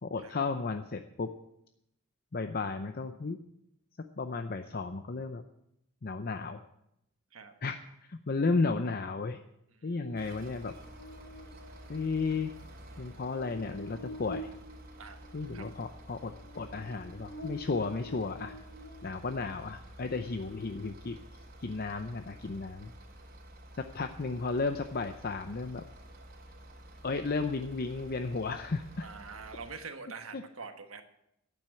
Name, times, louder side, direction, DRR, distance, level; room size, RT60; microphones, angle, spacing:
voice 1, 0.0-1.3 2.3-3.4 4.2-5.4 6.0-6.6 7.6-7.8 8.1-9.4 9.8-10.7 11.9-12.5 13.0-14.5 15.3-18.5 19.0-21.2 21.6-22.9 23.8-25.8 27.0-29.1 30.3-30.4, left 4 dB, 45° left, 8 dB, 0.6 m, -33 dB
Buzz, 10.0-19.4, equal, 90° left, 5.8 m, -48 dB
sound 1, 10.2-29.7, right 1 dB, 45° right, 2.4 m, -51 dB
voice 2, 29.0-31.0, right 5 dB, 85° right, 7 dB, 1.4 m, -45 dB
12.0 x 8.9 x 7.7 m, 0.79 s
head